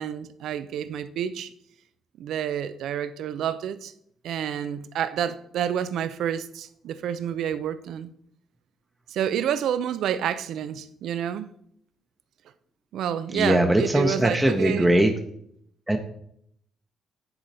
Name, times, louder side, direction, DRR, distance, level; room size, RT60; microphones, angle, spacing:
voice 1, 0.0-1.5 2.2-3.9 4.2-8.1 9.1-11.5 12.9-15.0, right 9 dB, 75° right, 0.5 m, -29 dB
voice 2, 13.3-15.1 15.9-16.0, right 1 dB, 10° right, 0.7 m, -20 dB
9.9 x 3.9 x 4.2 m
cardioid pair, 90°, 0 cm